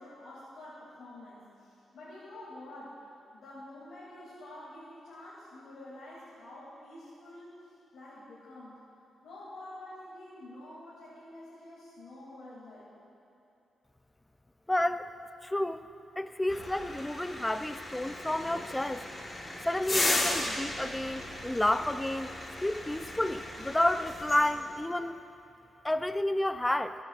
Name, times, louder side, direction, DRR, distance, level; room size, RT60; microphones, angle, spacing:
voice 1, 0.0-3.0 3.3-8.8 9.2-13.1, left 1 dB, 85° left, -9 dB, 2.5 m, -48 dB
voice 2, 14.7-15.1 15.4-15.8 16.2-19.1 19.6-22.3 22.6-25.1 25.8-27.0, left 1 dB, 10° left, 11 dB, 0.4 m, -30 dB
sound 1, 16.5-24.8, left 1 dB, 25° left, 1.3 m, -36 dB
21.0 x 8.0 x 2.4 m, 2.9 s
cardioid pair, 95°, 0 cm